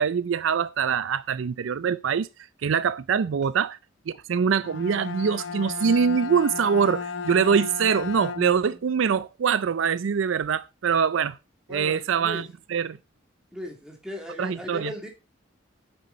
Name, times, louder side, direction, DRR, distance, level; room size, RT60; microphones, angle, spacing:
voice 1, 0.0-2.3 2.6-3.8 4.1-11.4 11.7-13.0 14.4-14.9, right 6 dB, 75° right, 0.4 m, -24 dB
Bowed string instrument, 4.5-8.8, left 5 dB, 65° left, 1.0 m, -34 dB
voice 2, 11.7-12.4 13.5-15.1, equal, 5° right, 2.5 m, -37 dB
10.5 x 6.6 x 4.2 m
head